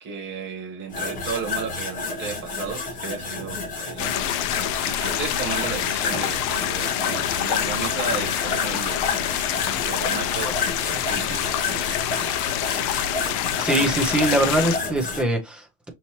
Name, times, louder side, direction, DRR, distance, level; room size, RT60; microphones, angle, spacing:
voice 1, 0.0-4.3 4.8-9.0 9.5-10.6 10.8-11.5, right 5 dB, 30° right, 1.4 m, -34 dB
sound 1, 0.9-15.2, left 3 dB, 20° left, 0.8 m, -30 dB
sound 2, 4.0-14.8, left 11 dB, 55° left, 0.5 m, -26 dB
voice 2, 13.6-15.9, right 1 dB, 5° right, 0.4 m, -23 dB
5.4 x 2.8 x 2.9 m
cardioid pair, 170°, 40 cm